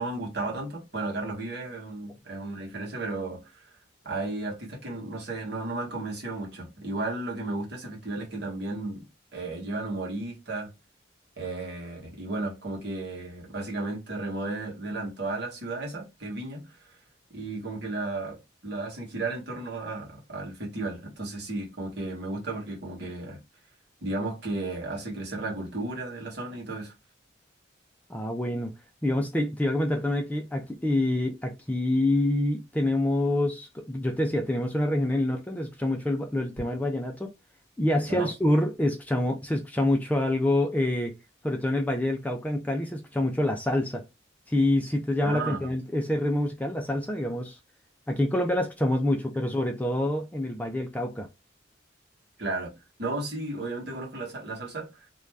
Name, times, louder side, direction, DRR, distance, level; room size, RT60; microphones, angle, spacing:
voice 1, 0.0-3.7 4.0-9.1 9.3-10.7 11.4-16.8 17.3-23.4 24.0-26.9 38.1-38.3 45.2-45.7 52.4-52.7 53.0-54.9, right 2 dB, 60° right, 1.1 m, -34 dB
voice 2, 28.1-28.7 29.0-37.3 37.8-41.1 41.4-44.0 44.5-47.6 48.1-51.3, left 1 dB, 10° left, 0.4 m, -26 dB
2.5 x 2.2 x 3.2 m
head